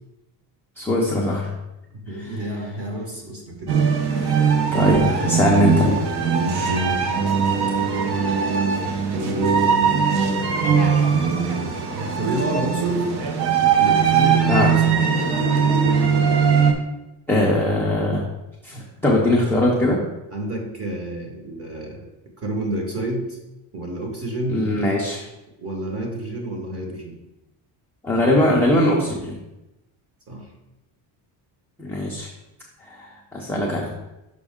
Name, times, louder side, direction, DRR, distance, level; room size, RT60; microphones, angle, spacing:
voice 1, 0.8-1.5 4.7-6.0 14.5-14.7 17.3-18.2 18.6-20.0 24.5-25.2 28.0-29.4 31.8-32.3 32.8-33.9, left 1 dB, 5° left, -5 dB, 0.3 m, -20 dB
voice 2, 1.9-3.8 4.1-5.4 9.1-10.0 10.3-11.8 12.2-13.1 13.8-15.2 20.3-22.1 22.4-23.4 23.7-24.6 25.6-27.2 30.3-30.5, right 1 dB, 30° right, 1 dB, 1.2 m, -30 dB
sound 1, 3.7-16.7, right 6 dB, 50° right, 0.8 m, -20 dB
6.0 x 5.1 x 3.6 m, 0.95 s
cardioid pair, 180°, 49 cm